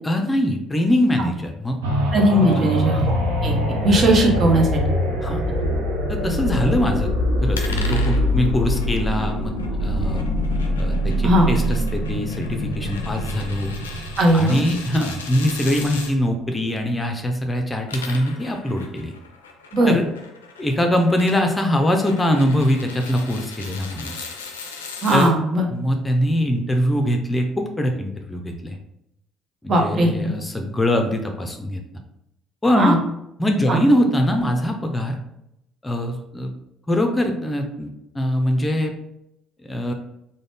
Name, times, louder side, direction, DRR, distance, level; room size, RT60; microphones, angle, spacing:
voice 1, 0.0-1.8 2.3-3.0 5.2-5.4 6.1-7.1 7.4-9.5 9.8-10.3 10.8-13.7 14.3-19.1 19.9-20.0 20.6-24.3 25.1-25.3 25.7-28.8 29.6-31.8 32.6-33.0 33.4-35.2 35.8-36.5 36.9-38.9 39.6-39.9, equal, 20° left, 4 dB, 0.5 m, -22 dB
sound 1, 1.8-15.5 16.0-16.1, equal, 80° right, 0.5 m, -23 dB
voice 2, 2.1-3.1 3.4-3.5 3.8-4.7 11.2-11.5 14.2-14.6 19.7-20.0 25.0-25.7 29.7-30.1 32.8-33.0 33.7-33.8, right 1 dB, 45° right, 1 dB, 0.8 m, -17 dB
sound 2, 7.5-16.1 17.7-25.3, left 4 dB, 85° left, 0.4 m, -38 dB
3.7 x 2.1 x 3.4 m, 0.82 s
hypercardioid pair, 50°, 0 cm